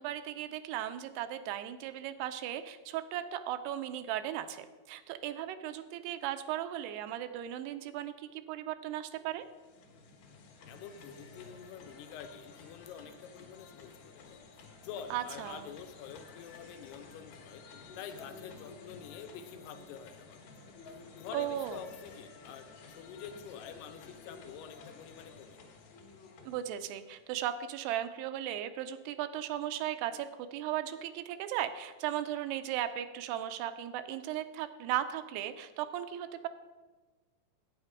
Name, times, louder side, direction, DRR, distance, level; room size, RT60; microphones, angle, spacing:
voice 1, 0.0-9.5 15.1-15.7 21.3-21.8 26.5-36.5, right 11 dB, 85° right, 10 dB, 2.6 m, -36 dB
sound 1, 9.3-27.3, left 4 dB, 60° left, 2.4 m, -52 dB
voice 2, 10.7-14.4 14.8-17.6 18.0-20.5 21.2-22.7 23.0-25.7, left 8 dB, 80° left, 8 dB, 2.6 m, -47 dB
9.1 x 8.9 x 4.7 m, 1.3 s
omnidirectional pair, 4.7 m